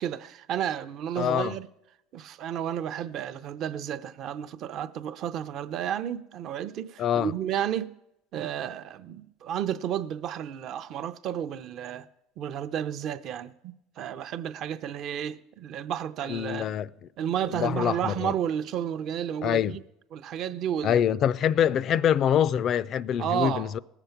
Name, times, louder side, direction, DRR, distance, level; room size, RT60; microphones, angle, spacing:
voice 1, 0.0-1.7 2.1-7.9 8.3-12.1 12.4-16.7 17.2-19.8 20.1-21.0 23.2-23.8, right 10 dB, 55° right, 0.6 m, -32 dB
voice 2, 1.2-1.5 7.0-7.3 16.3-16.9 17.5-18.3 19.4-19.8 20.8-23.8, left 9 dB, 50° left, 0.3 m, -25 dB
18.0 x 6.8 x 5.8 m
supercardioid pair, 95°, 0 cm